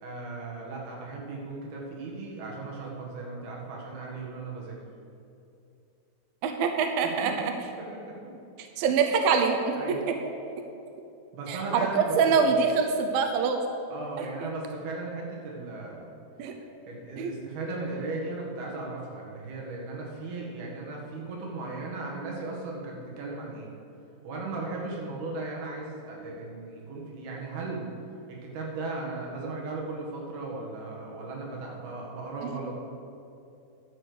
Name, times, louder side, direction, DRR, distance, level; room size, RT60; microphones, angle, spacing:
voice 1, 0.0-4.8 7.0-7.3 7.8-8.3 9.8-10.0 11.3-12.5 13.9-16.1 16.9-23.7 24.2-27.9 28.3-32.8, right 3 dB, 65° right, -2 dB, 3.5 m, -37 dB
voice 2, 6.4-7.5 8.8-10.2 11.5-13.6 14.2-14.5 16.4-16.6 17.2-17.3, right 5 dB, 80° right, 5 dB, 2.0 m, -25 dB
11.5 x 6.6 x 6.7 m, 2.7 s
omnidirectional pair, 5.1 m